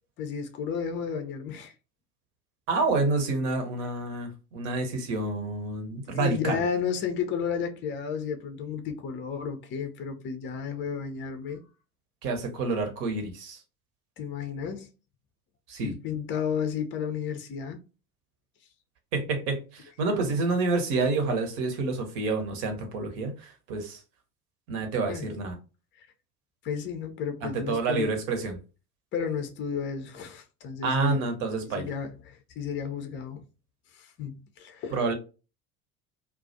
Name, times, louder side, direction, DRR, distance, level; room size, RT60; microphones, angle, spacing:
voice 1, 0.2-1.7 6.0-11.6 14.2-14.9 15.8-17.8 20.1-20.4 25.1-25.3 26.0-26.1 26.6-28.1 29.1-31.2 31.7-33.4 33.9-35.1, left 6 dB, 30° left, 0.5 m, -32 dB
voice 2, 2.7-6.6 12.2-13.6 15.7-15.9 19.1-23.3 23.7-24.0 24.7-25.5 27.4-28.6 30.8-31.9 34.9-35.1, right 3 dB, 60° right, 0.9 m, -28 dB
2.3 x 2.1 x 2.6 m
figure-of-eight pair, 70°, 44 cm